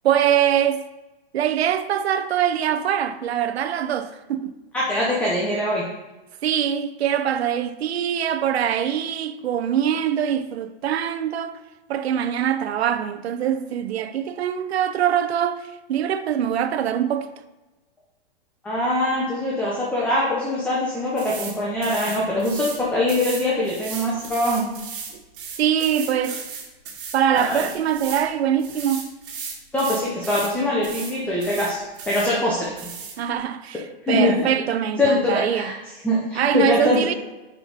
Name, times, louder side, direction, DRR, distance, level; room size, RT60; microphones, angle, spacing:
voice 1, 0.0-0.8 1.3-4.5 6.4-11.6 11.9-17.3 25.6-26.4 27.1-29.1 33.2-35.7 36.4-37.1, right 9 dB, 85° right, 0.7 m, -23 dB
voice 2, 4.7-5.8 18.6-24.7 27.3-27.6 29.7-31.8 32.1-32.7 34.0-34.5 35.0-35.7 36.0-37.0, left 1 dB, 5° left, 0.8 m, -23 dB
sound 1, 21.2-21.5 21.8-22.8 23.1-28.3 28.6-30.5 30.8-31.1 31.4-32.3 32.8-33.2, right 6 dB, 60° right, 2.0 m, -35 dB
5.7 x 5.2 x 4.9 m
hypercardioid pair, 160°, 31 cm